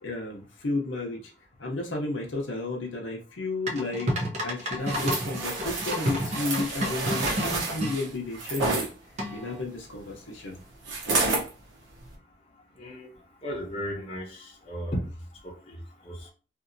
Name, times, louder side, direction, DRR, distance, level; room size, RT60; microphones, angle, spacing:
voice 1, 0.0-1.2 1.6-4.1 4.4-8.9 9.3-10.6, left 2 dB, 80° left, 0.7 m, -32 dB
sound 1, 3.7-8.0 9.2-9.6, equal, 35° right, 0.6 m, -30 dB
sound 2, 4.9-8.9 10.9-11.5 12.0-12.1, right 3 dB, 70° right, 0.9 m, -29 dB
voice 2, 12.8-13.1 13.4-15.1 15.4-15.8 16.0-16.3, equal, 35° left, 0.9 m, -35 dB
2.9 x 2.6 x 2.6 m
head